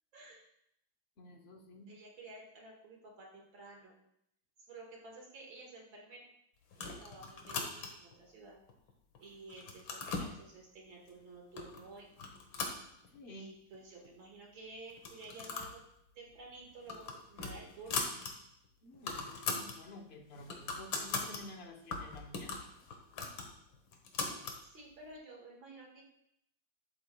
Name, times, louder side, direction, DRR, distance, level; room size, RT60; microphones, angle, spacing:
voice 1, 0.1-0.4 1.9-4.0 4.7-6.3 6.7-8.6 9.2-12.1 13.3-15.8 16.1-18.1 24.7-26.0, right 2 dB, 75° right, -1 dB, 2.6 m, -52 dB
voice 2, 1.2-1.9 13.1-13.5 18.8-22.6, left 2 dB, 40° left, 2 dB, 1.0 m, -51 dB
sound 1, 6.7-8.1 8.7-9.2 9.5-10.3 11.1-11.2 11.6-11.8 12.2-13.4 13.7-13.8 14.1-14.2 14.9-15.8 16.1-16.3 16.7-18.3 18.7-18.8 18.9-19.8 20.2-21.4 21.9-24.6, left 4 dB, 75° left, 1.9 m, -40 dB
11.5 x 7.7 x 2.3 m, 0.76 s
omnidirectional pair, 2.2 m